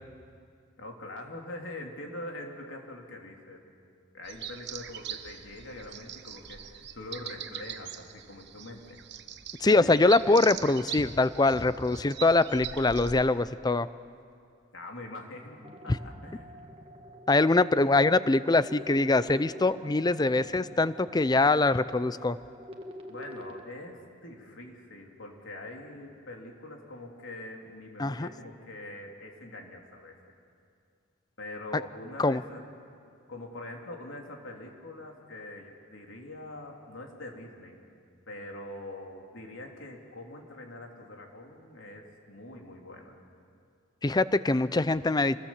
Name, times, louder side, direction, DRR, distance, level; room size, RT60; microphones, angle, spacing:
voice 1, 0.8-3.6 4.1-9.0 9.6-10.1 14.7-16.5 23.1-30.3 31.4-32.6 33.3-37.8 38.3-43.2, left 1 dB, 80° left, 1 dB, 3.3 m, -43 dB
sound 1, 4.2-13.2, right 9 dB, 60° right, 1.0 m, -42 dB
voice 2, 9.6-13.9 17.3-22.4 28.0-28.3 32.2-32.4 44.0-45.4, left 2 dB, 20° left, 15 dB, 0.5 m, -23 dB
sound 2, 15.6-23.6, left 1 dB, 30° right, 1.5 m, -47 dB
27.0 x 20.5 x 7.3 m, 2.4 s
head